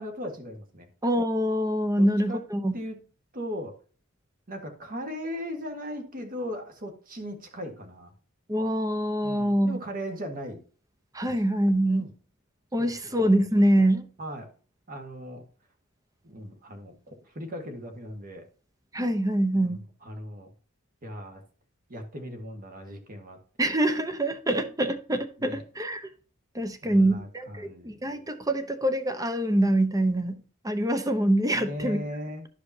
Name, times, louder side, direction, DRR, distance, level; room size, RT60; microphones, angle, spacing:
voice 1, 0.0-0.9 2.0-2.4 2.7-3.0 3.3-3.8 4.5-8.1 9.2-10.6 11.2-11.3 11.8-12.1 12.8-13.2 14.2-14.5 14.9-15.5 16.2-18.4 19.5-20.5 21.0-21.4 21.9-23.4 25.4-25.6 26.8-28.2 31.5-32.5, equal, 45° right, 1.6 m, -38 dB
voice 2, 1.0-2.7 8.5-9.8 11.1-12.1 12.7-14.0 18.9-19.8 23.6-26.1 26.5-30.4 30.6-32.0, right 1 dB, 15° right, 0.8 m, -25 dB
12.0 x 5.0 x 2.8 m
head